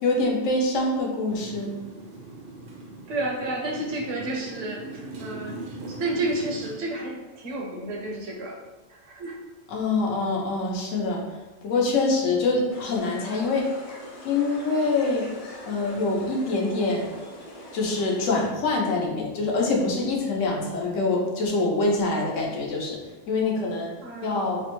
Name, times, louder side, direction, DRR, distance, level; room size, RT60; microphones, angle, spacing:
voice 1, 0.0-1.7 9.7-11.2 11.6-13.7 14.2-15.3 15.7-17.1 17.7-23.0 23.3-23.9 24.2-24.6, left 3 dB, 80° left, -1 dB, 1.0 m, -25 dB
Motorcycle, 1.3-6.8, right 2 dB, 60° right, 0.6 m, -40 dB
voice 2, 3.1-5.6 5.9-8.6 8.9-9.4 24.0-24.5, right 2 dB, 75° right, 0 dB, 1.0 m, -31 dB
sound 1, 12.7-18.5, left 1 dB, 65° left, 0.3 m, -42 dB
3.3 x 2.1 x 2.9 m, 1.1 s
omnidirectional pair, 1.3 m